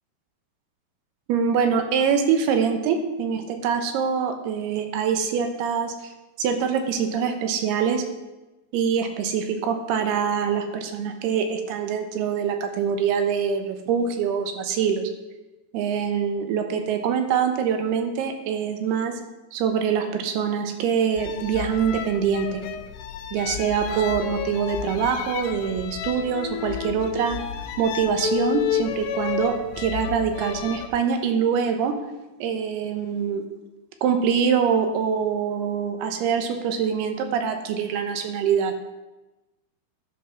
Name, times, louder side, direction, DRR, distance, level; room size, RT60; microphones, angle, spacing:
voice 1, 1.3-5.9 6.4-8.0 8.7-15.1 15.7-19.2 19.5-22.6 23.3-27.4 27.8-31.9 32.4-33.4 34.0-38.7, right 7 dB, 85° right, 6 dB, 2.9 m, -24 dB
sound 1, 21.2-30.9, left 9 dB, 85° left, 2.6 m, -31 dB
11.5 x 5.4 x 5.8 m, 1.1 s
omnidirectional pair, 4.6 m